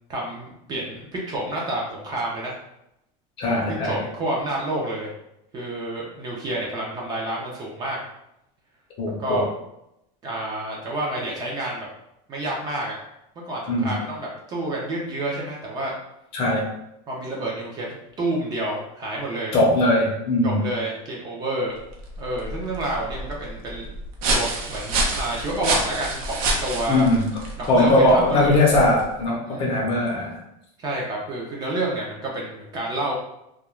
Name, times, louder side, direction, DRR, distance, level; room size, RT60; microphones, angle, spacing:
voice 1, 0.1-2.5 3.5-5.1 5.5-8.0 9.2-9.5 10.2-11.9 12.3-13.0 13.4-15.9 17.1-17.9 18.2-19.5 20.4-21.7 22.2-23.9 24.3-27.1 27.8-28.6 29.5-29.7 30.8-33.1, right 1 dB, 25° right, -3 dB, 0.4 m, -29 dB
voice 2, 3.4-4.0 9.0-9.5 13.7-14.0 16.3-16.7 19.5-20.7 26.9-27.3 27.7-30.4, left 1 dB, 30° left, -1 dB, 0.6 m, -20 dB
sound 1, 21.8-29.2, right 2 dB, 85° right, 0.7 m, -28 dB
2.3 x 2.2 x 3.0 m, 0.82 s
cardioid pair, 170°, 18 cm